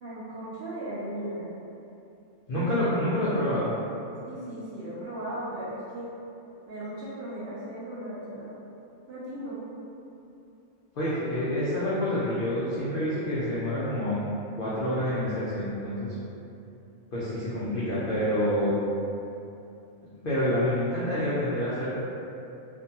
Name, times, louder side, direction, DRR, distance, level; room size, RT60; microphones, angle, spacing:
voice 1, 0.0-1.5 2.5-2.7 4.2-6.1 6.7-8.6 9.1-9.7, right 1 dB, 60° right, -9 dB, 0.6 m, -37 dB
voice 2, 2.5-3.7 10.9-14.2 14.6-16.1 17.1-18.8 20.2-21.9, left 1 dB, 70° left, -10 dB, 0.5 m, -27 dB
2.5 x 2.2 x 2.7 m, 2.8 s
omnidirectional pair, 1.4 m